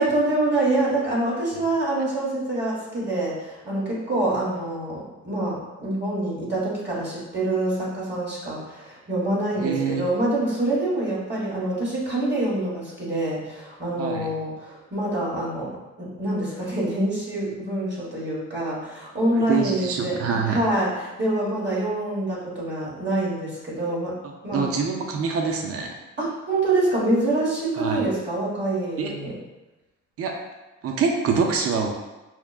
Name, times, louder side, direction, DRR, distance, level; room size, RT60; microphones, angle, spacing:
voice 1, 0.0-15.7 16.0-24.1 24.4-24.7 26.2-29.3, right 2 dB, 35° right, -7 dB, 1.3 m, -26 dB
voice 2, 9.6-10.1 14.0-14.3 19.3-20.6 24.5-25.9 27.8-28.1 29.0-29.1 30.2-30.3 30.8-31.9, right 5 dB, 50° right, 2 dB, 0.5 m, -25 dB
5.6 x 2.1 x 2.3 m, 1.1 s
cardioid pair, 90°, 30 cm